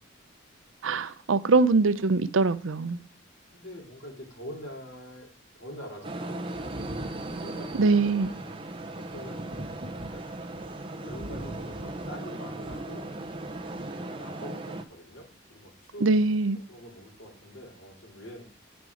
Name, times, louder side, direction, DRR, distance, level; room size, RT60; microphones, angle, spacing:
voice 1, 0.8-3.0 7.7-8.3 16.0-16.6, right 3 dB, 80° right, 0.6 m, -23 dB
voice 2, 3.5-5.3 5.5-6.5 7.4-8.6 9.0-9.5 10.1-10.3 11.0-13.1 13.9-16.2 16.5-18.4, equal, 70° left, 3.3 m, -44 dB
sound 1, 6.0-14.8, right 2 dB, 25° right, 0.7 m, -38 dB
Thunder, 6.5-13.9 15.0-15.1, equal, 50° right, 1.2 m, -44 dB
9.3 x 5.2 x 4.8 m
head